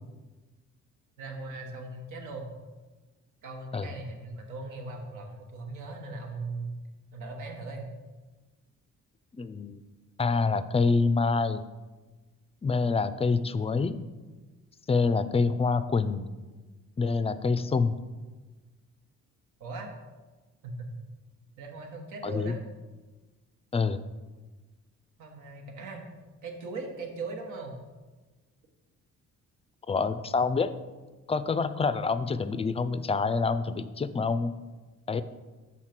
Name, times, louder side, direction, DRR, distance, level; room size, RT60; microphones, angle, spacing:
voice 1, 1.2-2.5 3.4-6.7 7.1-7.9 19.6-19.9 20.6-20.9 21.6-22.6 25.2-26.1 26.4-27.8, right 3 dB, 85° right, 2 dB, 1.3 m, -39 dB
voice 2, 9.3-9.8 10.2-11.6 12.6-14.0 14.9-16.3 17.0-18.0 22.2-22.6 23.7-24.0 29.9-30.7 31.3-34.5 35.1-35.2, left 4 dB, 20° left, 12 dB, 0.3 m, -26 dB
6.4 x 4.0 x 5.9 m, 1.2 s
cardioid pair, 90°, 30 cm